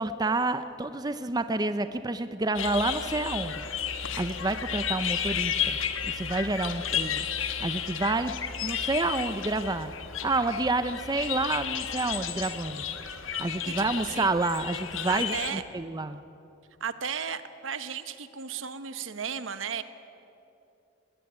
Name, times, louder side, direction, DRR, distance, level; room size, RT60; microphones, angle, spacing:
voice 1, 0.0-5.8 6.1-8.3 8.6-9.9 10.2-12.8 13.4-16.2, right 2 dB, 20° right, 11 dB, 0.6 m, -29 dB
sound 1, 2.5-15.5, left 8 dB, 80° left, 1.5 m, -33 dB
voice 2, 13.7-14.3 15.1-15.6 16.8-19.8, right 7 dB, 75° right, 11 dB, 1.1 m, -34 dB
19.5 x 18.5 x 9.5 m, 2.8 s
head